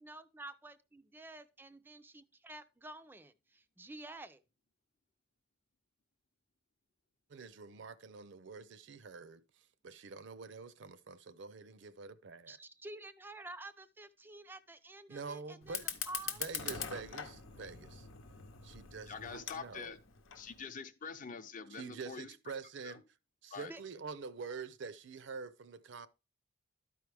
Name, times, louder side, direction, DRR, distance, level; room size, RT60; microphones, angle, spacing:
voice 1, 0.0-4.4 12.5-16.4 23.7-23.8, right 2 dB, 10° right, 0.3 m, -50 dB
voice 2, 7.3-9.4 9.8-12.6 15.1-16.0 16.4-18.1 18.6-19.9 21.7-23.0 23.4-26.1, right 4 dB, 65° right, 0.5 m, -46 dB
Fire, 15.6-20.6, left 8 dB, 85° left, 0.9 m, -43 dB
voice 3, 19.1-20.0 20.3-22.5 22.8-23.0 23.5-23.7, left 5 dB, 40° left, 0.6 m, -45 dB
12.5 x 4.6 x 3.4 m
head